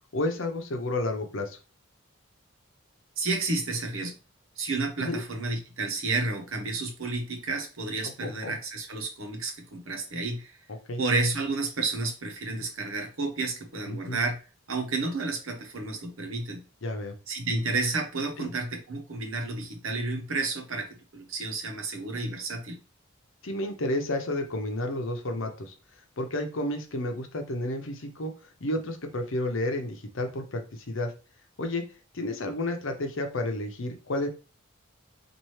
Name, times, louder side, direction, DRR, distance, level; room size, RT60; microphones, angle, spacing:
voice 1, 0.1-1.6 5.0-5.2 8.2-8.5 10.9-11.0 13.9-14.2 16.8-17.1 18.4-18.5 23.4-25.7 26.2-28.3 28.6-31.1 31.6-31.8 32.1-34.3, left 1 dB, 70° left, 5 dB, 0.8 m, -31 dB
voice 2, 3.2-4.1 4.6-10.5 11.0-14.4 14.7-16.6 17.3-22.8, right 3 dB, 80° right, 4 dB, 1.0 m, -31 dB
4.3 x 2.6 x 3.2 m, 0.33 s
head